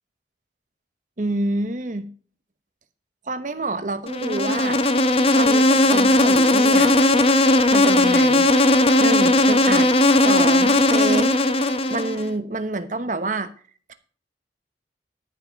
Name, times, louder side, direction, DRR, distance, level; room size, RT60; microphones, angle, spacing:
voice 1, 1.2-2.1 3.3-4.8 5.3-6.9 7.7-8.5 9.0-11.4 11.9-13.5, right 2 dB, 45° right, 11 dB, 1.0 m, -27 dB
Insect, 4.1-12.3, left 1 dB, 30° left, 0.9 m, -17 dB
13.5 x 6.0 x 5.1 m, 0.42 s
head